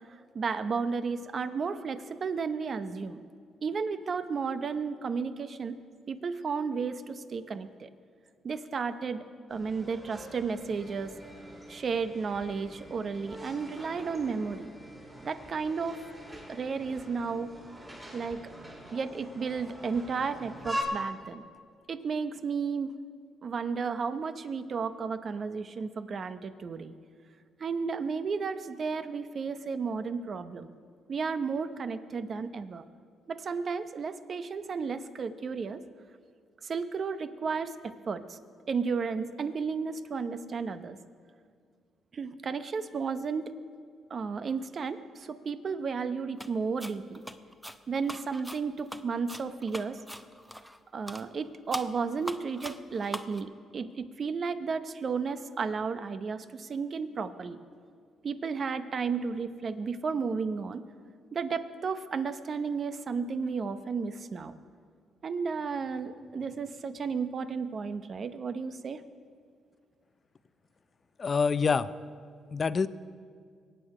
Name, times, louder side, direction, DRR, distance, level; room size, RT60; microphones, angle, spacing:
voice 1, 0.3-3.2 3.6-5.8 6.1-7.9 8.4-11.1 11.7-14.7 15.2-16.0 16.5-17.5 18.1-18.4 18.9-21.4 21.9-22.9 23.4-26.9 27.6-30.7 31.1-32.8 33.3-35.8 36.6-38.4 38.7-41.0 42.1-43.5 44.1-47.2 47.9-50.0 50.9-57.6 58.2-60.8 61.3-64.5 65.2-69.0, right 5 dB, 45° right, 11 dB, 0.8 m, -33 dB
sound 1, 9.5-20.8, equal, 20° right, 4.1 m, -44 dB
sound 2, 46.4-46.5 46.8-50.8 51.1-51.3 51.7-53.4, equal, 5° right, 0.6 m, -41 dB
voice 2, 71.2-71.9 72.5-72.9, left 5 dB, 40° left, 15 dB, 0.5 m, -26 dB
22.5 x 9.2 x 4.9 m, 2.1 s
cardioid pair, 90°, 0 cm